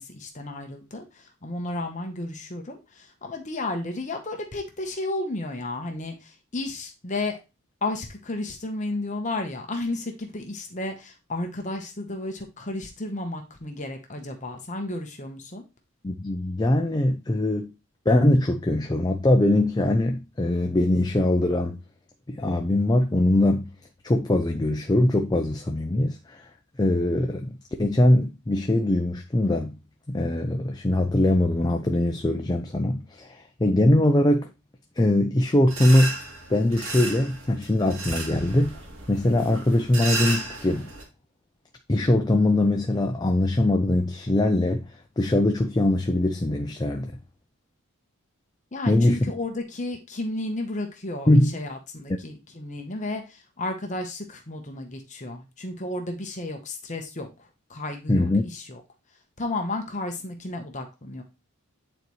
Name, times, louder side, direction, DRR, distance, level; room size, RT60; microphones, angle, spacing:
voice 1, 0.0-7.4 7.8-15.6 48.7-58.8 59.4-61.2, left 2 dB, 35° left, 0.9 m, -33 dB
voice 2, 16.0-17.7 18.1-21.8 22.3-23.7 24.0-26.5 26.8-29.8 30.1-34.5 35.0-36.2 36.5-38.8 39.1-40.9 41.9-47.1 48.9-49.3 51.3-51.6 58.1-58.4, left 1 dB, 20° left, 0.4 m, -22 dB
sound 1, 35.7-41.0, right 2 dB, 70° right, 1.8 m, -34 dB
8.9 x 4.1 x 3.1 m
head